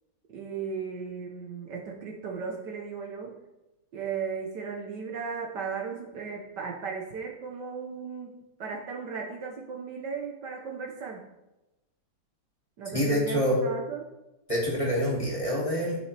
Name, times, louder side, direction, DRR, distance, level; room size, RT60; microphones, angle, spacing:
voice 1, 0.3-3.4 3.9-11.3 12.8-14.0, right 5 dB, 65° right, 0 dB, 1.5 m, -36 dB
voice 2, 12.9-13.6 14.5-16.0, equal, 15° left, -5 dB, 2.5 m, -26 dB
13.0 x 6.1 x 3.4 m, 0.99 s
omnidirectional pair, 2.1 m